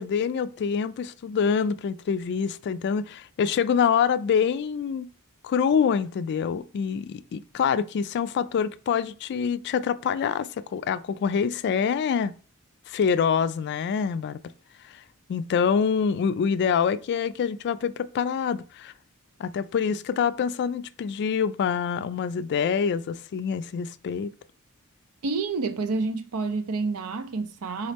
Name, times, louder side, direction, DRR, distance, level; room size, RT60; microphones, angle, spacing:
voice 1, 0.0-5.1 5.4-12.3 12.9-14.4 15.3-18.9 19.4-24.3, left 7 dB, 50° left, 0.3 m, -25 dB
voice 2, 25.2-27.9, right 3 dB, 90° right, 0.6 m, -28 dB
4.1 x 3.8 x 3.3 m
head